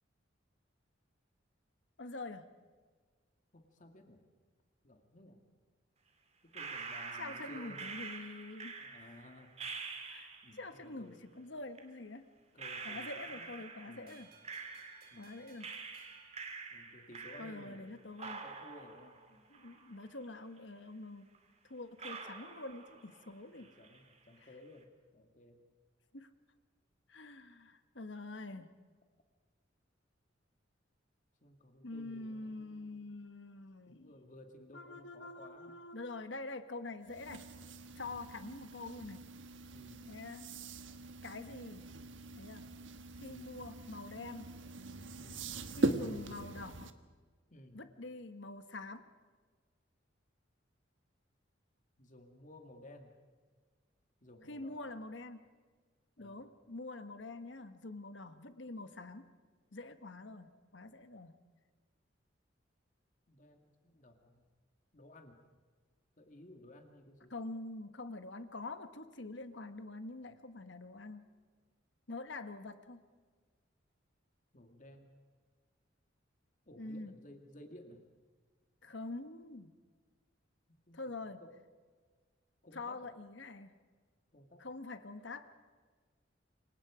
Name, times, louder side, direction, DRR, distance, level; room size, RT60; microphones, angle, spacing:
voice 1, 2.0-2.5 7.2-8.8 10.0-12.2 12.8-14.3 15.2-15.7 17.4-18.4 19.5-21.3 21.7-23.7 26.1-26.3 27.1-28.7 31.8-34.1 34.7-37.4 38.0-39.2 40.1-40.5 41.2-41.8 42.3-42.7 43.2-44.5 45.7-46.9 47.7-49.1 54.5-55.4 56.2-59.3 59.7-61.3 67.3-71.3 72.1-73.0 76.8-77.1 78.8-79.7 80.9-81.4 82.7-83.7 84.6-85.5, left 2 dB, 65° left, 10 dB, 1.4 m, -45 dB
voice 2, 3.5-4.3 4.8-5.4 6.4-7.9 8.8-9.5 10.4-11.2 12.5-14.3 15.1-15.6 16.7-17.9 18.2-19.5 23.6-25.6 31.4-33.1 33.9-35.8 38.0-38.3 39.7-40.2 43.3-43.6 45.2-45.5 47.5-47.9 52.0-53.1 54.2-54.9 56.2-56.5 63.3-64.4 64.9-65.4 66.2-67.3 74.5-75.1 76.7-78.0 80.9-81.0 81.4-81.5 82.6-83.1 84.3-84.7, left 1 dB, 40° left, 5 dB, 2.2 m, -56 dB
sound 1, 6.5-10.7 11.8-11.9 12.6-15.3 15.6-17.9 18.2-20.3 20.6-20.7 21.3-21.4 22.0-23.3 23.6-24.1, right 4 dB, 35° right, 2.7 m, -46 dB
sound 2, 14.1-17.3, right 6 dB, 50° right, 4.7 m, -63 dB
sound 3, 37.0-46.9, right 2 dB, 75° right, 1.4 m, -41 dB
28.0 x 24.0 x 5.0 m, 1.5 s
head